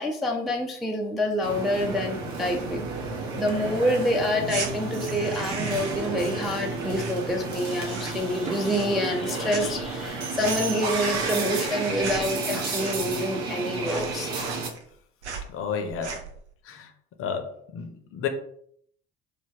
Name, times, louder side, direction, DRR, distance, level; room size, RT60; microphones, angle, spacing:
voice 1, 0.0-2.9 3.4-14.5, equal, ahead, 0 dB, 0.3 m, -27 dB
sound 1, 1.4-14.7, right 3 dB, 55° right, 0.7 m, -32 dB
sound 2, 4.4-4.7 5.1-6.1 6.4-7.6 7.8-8.3 8.6-9.2 9.5-13.3 13.5-13.6 13.8-14.9 15.2-15.5 15.9-16.4, right 5 dB, 85° right, 0.5 m, -37 dB
voice 2, 15.5-16.2 16.7-16.9 17.2-18.3, left 7 dB, 40° left, 6 dB, 0.6 m, -31 dB
3.3 x 2.2 x 3.3 m, 0.65 s
figure-of-eight pair, 55°, 33 cm